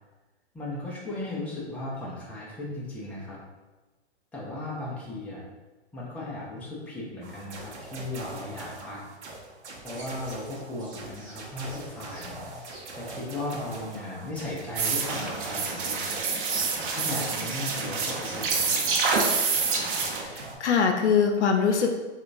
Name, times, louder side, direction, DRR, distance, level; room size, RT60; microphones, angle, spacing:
voice 1, 0.5-3.4 4.3-5.5 5.9-9.0 9.8-12.5 12.9-16.1 16.8-18.8, left 1 dB, 5° left, -6 dB, 0.5 m, -36 dB
sound 1, 7.2-20.5, right 2 dB, 85° right, 0.9 m, -42 dB
sound 2, 9.9-12.9 14.3-16.2 16.5-18.4 18.6-20.1, right 1 dB, 20° right, 1.2 m, -45 dB
sound 3, 14.8-20.2, right 4 dB, 50° right, 0.8 m, -27 dB
voice 2, 20.3-21.9, left 6 dB, 85° left, 4 dB, 0.6 m, -23 dB
4.9 x 2.4 x 2.6 m, 1.2 s
hypercardioid pair, 135°, 33 cm